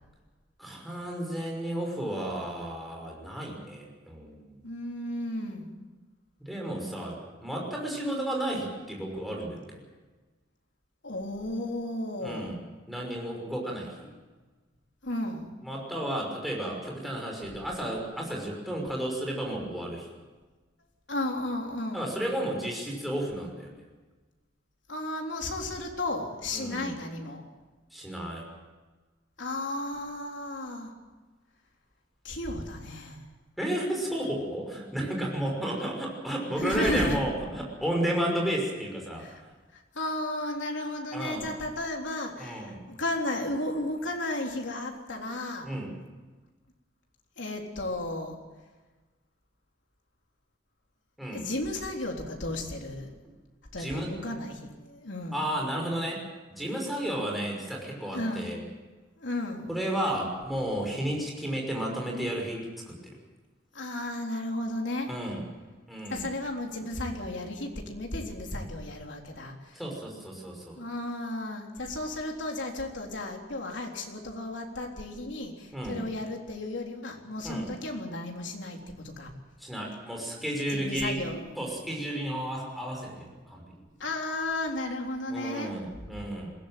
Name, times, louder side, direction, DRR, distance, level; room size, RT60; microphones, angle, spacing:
voice 1, 0.6-4.6 6.4-9.8 12.2-12.6 12.9-14.1 15.6-20.1 21.9-23.8 26.5-27.0 27.9-28.5 33.6-39.3 41.1-41.5 42.4-42.7 45.6-45.9 51.2-51.5 53.8-54.1 55.3-56.2 56.5-58.6 59.7-63.2 65.1-65.4 65.9-66.2 69.7-70.8 75.7-76.0 77.4-77.7 79.6-81.2 81.6-83.8 85.3-86.5, right 1 dB, ahead, -1 dB, 5.9 m, -32 dB
voice 2, 4.6-5.7 11.0-12.5 15.0-15.5 21.1-22.1 24.9-27.5 29.4-30.9 32.2-33.2 36.6-37.2 39.2-39.4 39.7-45.7 47.4-48.4 51.3-53.2 53.7-55.5 58.1-58.5 59.2-59.8 63.7-65.1 66.1-69.8 70.8-79.3 80.7-81.5 84.0-85.7 86.1-86.2, left 1 dB, 75° left, 2 dB, 3.7 m, -34 dB
22.0 x 16.5 x 9.2 m, 1.3 s
head